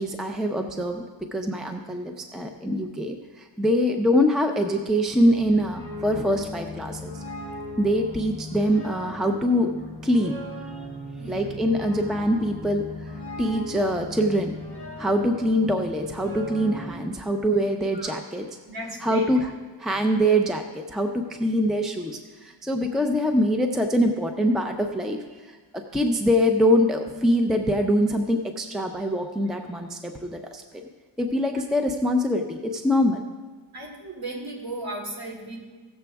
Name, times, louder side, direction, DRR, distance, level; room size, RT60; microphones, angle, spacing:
voice 1, 0.0-7.2 7.8-9.7 10.0-10.4 11.3-14.6 15.0-18.5 19.0-19.5 19.8-25.6 25.9-30.8 31.2-33.2, equal, ahead, 4 dB, 0.5 m, -24 dB
sound 1, 5.2-16.9, left 1 dB, 15° right, 1.7 m, -38 dB
voice 2, 11.2-11.6 17.5-17.6 17.9-18.2 18.7-19.3 19.9-20.1 33.7-35.6, right 1 dB, 50° right, -1 dB, 2.7 m, -36 dB
16.5 x 6.9 x 3.5 m, 1.4 s
wide cardioid pair, 125°, 45 cm